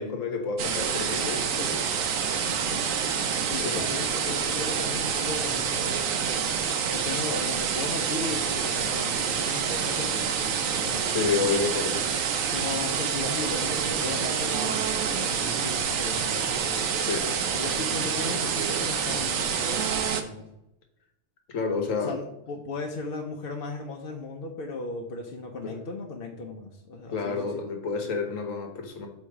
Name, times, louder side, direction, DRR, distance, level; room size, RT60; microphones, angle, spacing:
voice 1, 0.0-1.8 3.6-3.9 11.1-12.0 17.0-17.3 21.5-22.2 25.6-25.7 27.1-29.1, left 4 dB, 85° left, 3 dB, 1.6 m, -29 dB
sound 1, 0.6-20.2, right 7 dB, 90° right, 1.1 m, -27 dB
voice 2, 2.5-2.8 3.4-6.1 6.9-11.6 12.5-16.9 17.5-20.5 22.0-27.6, left 3 dB, 50° left, 1 dB, 0.8 m, -36 dB
8.0 x 3.1 x 4.8 m, 0.88 s
omnidirectional pair, 1.3 m